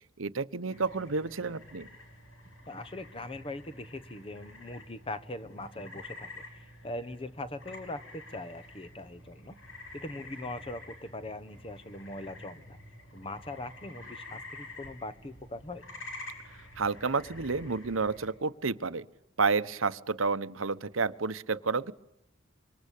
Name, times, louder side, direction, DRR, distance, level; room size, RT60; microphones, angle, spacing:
voice 1, 0.2-1.9 16.8-19.1 19.4-21.9, right 4 dB, 85° right, 14 dB, 1.0 m, -30 dB
sound 1, 0.7-18.3, left 2 dB, 80° left, 7.0 m, -49 dB
voice 2, 2.7-9.6 9.9-12.8 13.1-15.9, left 2 dB, 30° left, 14 dB, 1.1 m, -41 dB
26.0 x 24.0 x 8.5 m, 0.81 s
head